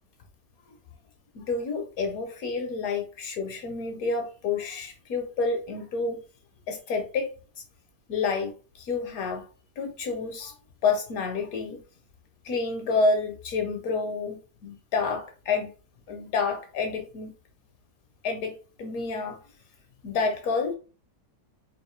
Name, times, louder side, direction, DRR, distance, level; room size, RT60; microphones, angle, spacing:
voice 1, 1.3-6.2 6.7-7.3 8.1-9.4 9.8-10.5 10.8-11.8 12.4-15.7 16.1-17.3 18.2-19.4 20.0-20.7, left 4 dB, 65° left, 1.0 m, -29 dB
3.8 x 2.5 x 3.1 m
omnidirectional pair, 1.9 m